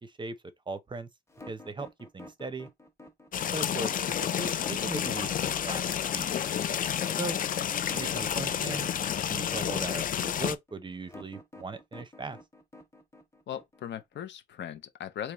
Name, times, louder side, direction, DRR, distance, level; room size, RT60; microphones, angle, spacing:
voice 1, 0.0-0.4 0.7-1.1 1.5-2.7 3.5-6.3 7.2-7.4 7.9-8.9 9.3-12.4, right 3 dB, 25° right, 0.6 m, -38 dB
sound 1, 1.3-14.2, left 1 dB, 15° left, 1.1 m, -50 dB
sound 2, 3.3-10.5, left 9 dB, 45° left, 0.4 m, -30 dB
voice 2, 13.5-15.3, left 10 dB, 65° left, 0.8 m, -39 dB
3.5 x 2.9 x 3.0 m
cardioid pair, 90°, 20 cm